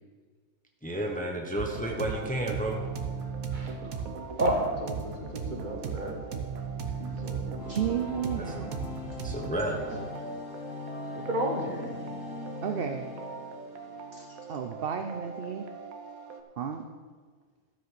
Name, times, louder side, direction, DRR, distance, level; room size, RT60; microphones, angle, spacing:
voice 1, 0.8-2.8 9.2-9.8, right 1 dB, 5° left, 1 dB, 0.9 m, -31 dB
sound 1, 1.6-16.4, right 6 dB, 80° right, 1.4 m, -38 dB
voice 2, 3.5-4.1 4.4-6.2 7.0-7.6 11.1-12.0, right 1 dB, 35° right, 1 dB, 1.6 m, -32 dB
sound 2, 7.5-14.4, left 4 dB, 65° left, 1.5 m, -41 dB
voice 3, 7.6-8.7 12.6-13.1 14.1-15.7 16.6-16.9, right 8 dB, 55° right, 5 dB, 0.7 m, -33 dB
13.0 x 5.2 x 6.8 m, 1.5 s
omnidirectional pair, 1.5 m